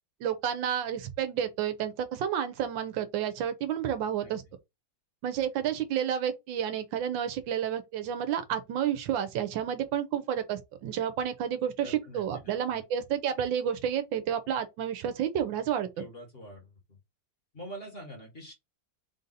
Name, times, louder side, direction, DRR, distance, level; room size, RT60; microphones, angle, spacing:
voice 1, 0.2-4.4 5.2-16.0, right 9 dB, 80° right, 1.4 m, -30 dB
voice 2, 11.8-12.8 16.0-16.7 17.5-18.5, equal, 35° left, 1.5 m, -45 dB
3.8 x 2.6 x 4.0 m
omnidirectional pair, 2.1 m